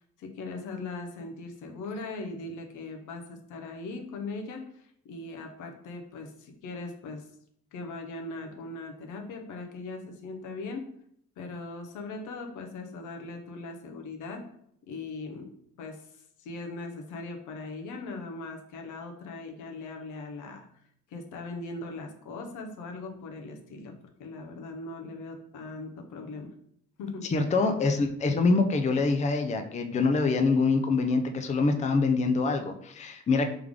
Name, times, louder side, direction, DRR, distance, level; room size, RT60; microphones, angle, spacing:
voice 1, 0.2-7.3 7.7-10.9 11.4-14.4 14.9-15.5 15.8-20.6 21.1-23.9 24.2-26.5 27.0-27.3, left 3 dB, 85° left, 3 dB, 0.8 m, -39 dB
voice 2, 27.3-33.5, left 3 dB, 25° left, 6 dB, 0.4 m, -25 dB
3.5 x 3.3 x 3.5 m, 0.69 s
cardioid pair, 90°, 30 cm